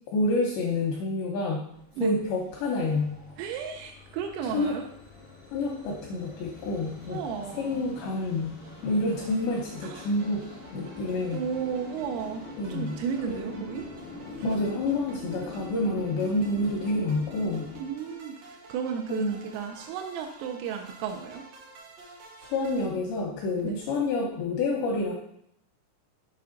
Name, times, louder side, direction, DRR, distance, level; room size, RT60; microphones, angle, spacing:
voice 1, 0.1-1.7 2.0-3.1 4.5-4.8 5.5-7.2 7.6-8.5 8.8-10.4 10.7-11.5 12.6-13.0 13.3-13.7 14.4-17.7 19.1-19.4 22.4-25.1, left 2 dB, 85° left, -1 dB, 2.5 m, -28 dB
sound 1, 1.7-17.8, left 3 dB, 55° left, 0.7 m, -45 dB
voice 2, 3.4-4.9 7.1-7.8 9.8-10.1 11.3-13.9 14.3-14.7 17.8-21.4 23.6-23.8, right 7 dB, 85° right, 3 dB, 3.3 m, -34 dB
sound 2, 8.6-22.9, right 3 dB, 70° right, 2.1 m, -51 dB
7.7 x 5.7 x 3.8 m, 0.73 s
omnidirectional pair, 5.9 m